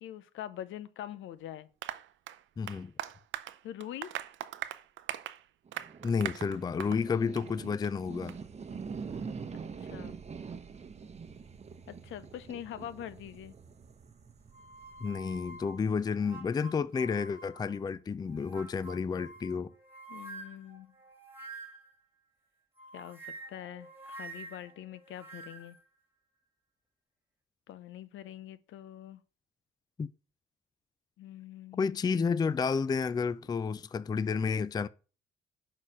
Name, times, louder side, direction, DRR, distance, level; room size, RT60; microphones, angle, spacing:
voice 1, 0.0-1.7 3.6-4.1 9.5-10.2 11.9-13.5 20.1-20.9 22.9-25.8 27.7-29.2 31.2-32.0, left 11 dB, 75° left, 0.6 m, -44 dB
Applause, 1.8-7.0 7.4-7.5 7.8-7.9 8.3-8.4, right 12 dB, 75° right, 0.6 m, -40 dB
voice 2, 2.6-2.9 6.0-8.4 15.0-19.7 30.0-30.1 31.8-34.9, left 5 dB, 20° left, 0.3 m, -31 dB
sound 1, 5.7-16.1, right 5 dB, 35° right, 0.8 m, -45 dB
sound 2, 14.5-17.8 18.2-22.0 22.8-25.8, right 3 dB, 10° right, 2.2 m, -48 dB
6.4 x 4.0 x 6.2 m
cardioid pair, 90°, 20 cm